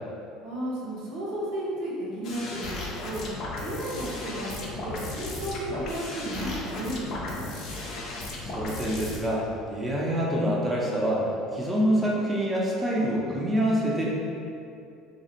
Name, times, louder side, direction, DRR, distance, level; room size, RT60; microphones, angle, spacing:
voice 1, 0.4-3.3 3.6-7.4, right 1 dB, 65° right, -6 dB, 0.6 m, -33 dB
sound 1, 2.2-9.2, left 2 dB, 55° left, 0.4 m, -35 dB
voice 2, 8.4-11.2 11.5-14.1, equal, 10° right, -5 dB, 0.5 m, -26 dB
2.4 x 2.0 x 2.7 m, 2.5 s
hypercardioid pair, 65°, 0 cm